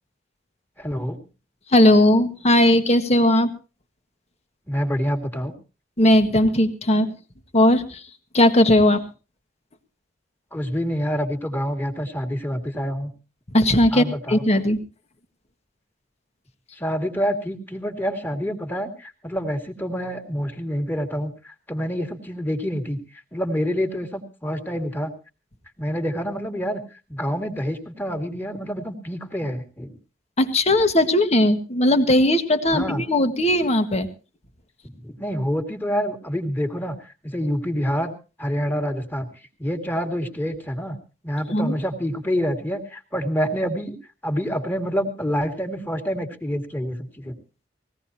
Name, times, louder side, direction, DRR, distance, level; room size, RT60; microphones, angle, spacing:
voice 1, 0.8-1.2 4.7-5.5 10.5-13.1 13.9-14.4 16.7-25.1 25.8-26.8 27.1-29.9 32.7-33.0 34.9-38.1 38.4-39.3 39.6-41.0 41.2-44.0 44.2-47.4, equal, 10° left, 5 dB, 2.3 m, -27 dB
voice 2, 1.7-3.5 6.0-7.1 7.5-8.0 8.3-9.1 13.5-14.8 30.4-34.1 41.5-41.8, left 1 dB, 35° left, 8 dB, 1.7 m, -18 dB
21.0 x 17.0 x 2.9 m, 0.32 s
head